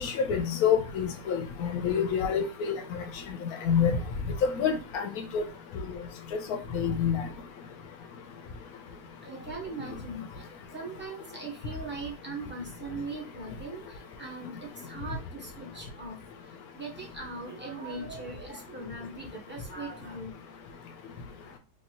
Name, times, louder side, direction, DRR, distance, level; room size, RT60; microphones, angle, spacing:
voice 1, 0.0-3.0 3.6-3.9 4.6-5.4 6.7-7.3, left 7 dB, 75° left, 7 dB, 1.0 m, -27 dB
voice 2, 9.2-20.3, right 3 dB, 10° right, -2 dB, 0.8 m, -40 dB
3.4 x 2.7 x 2.8 m, 0.31 s
omnidirectional pair, 1.7 m